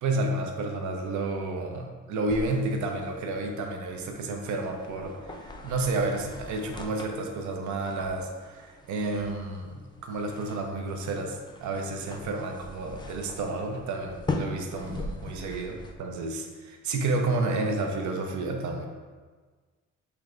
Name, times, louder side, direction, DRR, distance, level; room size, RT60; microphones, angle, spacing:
voice 1, 0.0-18.9, right 2 dB, 75° right, 2 dB, 0.7 m, -31 dB
sound 1, 2.3-16.0, left 2 dB, 15° left, 0.5 m, -41 dB
5.9 x 3.3 x 2.5 m, 1.4 s
cardioid pair, 90°, 30 cm